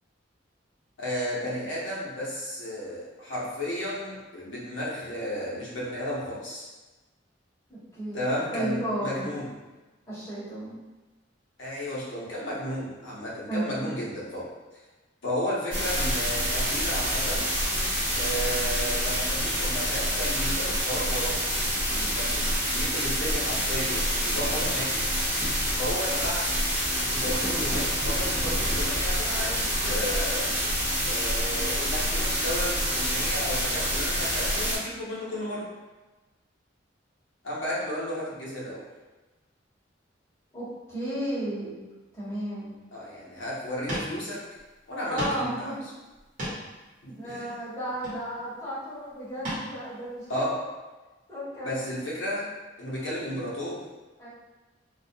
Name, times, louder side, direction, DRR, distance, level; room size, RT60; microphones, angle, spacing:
voice 1, 1.0-6.7 8.1-9.5 11.6-14.5 15.2-17.5 18.2-25.0 25.8-26.5 26.9-30.5 31.0-35.7 37.4-38.9 42.9-44.4 44.9-45.7 47.0-47.6 50.3-50.6 51.6-52.5 52.8-53.8, equal, 85° left, -6 dB, 0.8 m, -33 dB
voice 2, 7.7-8.2 8.5-9.3 10.1-10.8 13.5-13.9 40.5-41.8 42.1-42.7 45.1-45.8 47.0-50.5 51.3-51.8 54.2-54.3, right 1 dB, 15° left, -12 dB, 1.1 m, -33 dB
sound 1, 15.7-34.8, equal, 10° right, 0.7 m, -27 dB
sound 2, 43.6-43.7 43.9-44.2 44.5-44.6 45.2-45.5 46.1-46.8 47.9-48.5 49.4-49.7 50.2-50.3, equal, 45° right, 1.0 m, -34 dB
2.3 x 2.2 x 2.6 m, 1.2 s
head